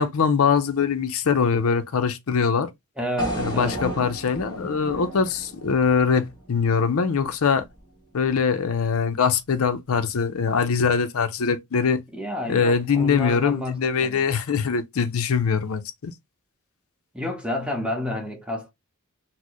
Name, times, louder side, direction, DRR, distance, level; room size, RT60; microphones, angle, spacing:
voice 1, 0.0-2.7 3.4-7.6 8.1-12.0 12.5-16.1, left 6 dB, 70° left, 0.5 m, -22 dB
voice 2, 3.0-3.8 12.1-14.3 17.1-18.7, left 1 dB, 5° right, 0.8 m, -30 dB
sound 1, 3.2-7.3, right 1 dB, 20° left, 1.4 m, -33 dB
4.2 x 2.0 x 2.9 m
head